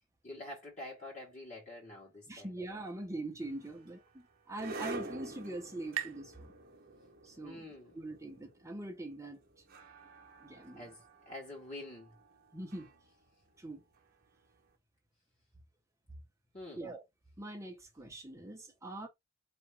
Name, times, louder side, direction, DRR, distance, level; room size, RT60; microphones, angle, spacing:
voice 1, 0.2-2.5 7.4-8.0 10.7-12.1 16.5-16.8, left 1 dB, 35° left, 1.6 m, -47 dB
voice 2, 2.3-6.5 7.2-7.7 7.9-9.4 10.4-10.9 12.5-12.9 13.6-13.8 16.8-17.0 17.4-19.1, right 2 dB, 15° right, 0.9 m, -43 dB
sound 1, 3.4-14.5, right 2 dB, 45° right, 1.0 m, -49 dB
sound 2, 4.5-7.9, right 11 dB, 80° right, 0.5 m, -46 dB
4.3 x 3.0 x 3.4 m
head